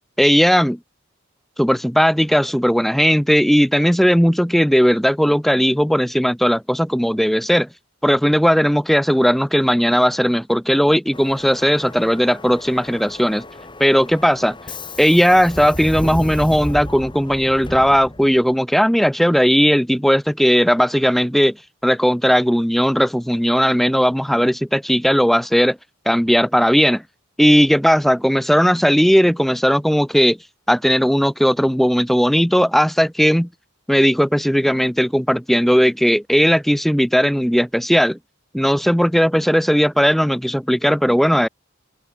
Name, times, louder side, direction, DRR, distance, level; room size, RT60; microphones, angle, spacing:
voice 1, 0.2-0.8 1.6-7.7 8.0-13.4 13.8-14.6 15.0-21.6 21.8-25.8 26.0-27.0 27.4-30.4 30.7-33.5 33.9-38.2 38.5-41.5, equal, ahead, 1.6 m, -17 dB
Subway metro underground, 11.1-18.5, left 1 dB, 25° left, 4.8 m, -33 dB
open air
head